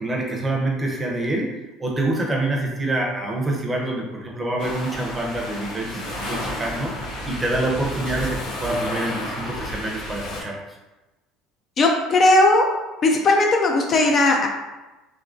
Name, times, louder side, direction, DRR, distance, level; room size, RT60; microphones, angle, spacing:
voice 1, 0.0-6.9 7.3-10.6, right 2 dB, 15° right, -1 dB, 0.7 m, -26 dB
sound 1, 4.6-10.4, left 1 dB, 80° left, 1.4 m, -31 dB
voice 2, 11.8-12.7 13.0-14.5, left 2 dB, 35° left, 2 dB, 0.4 m, -17 dB
3.6 x 2.8 x 2.6 m, 1.1 s
cardioid pair, 140°, 0 cm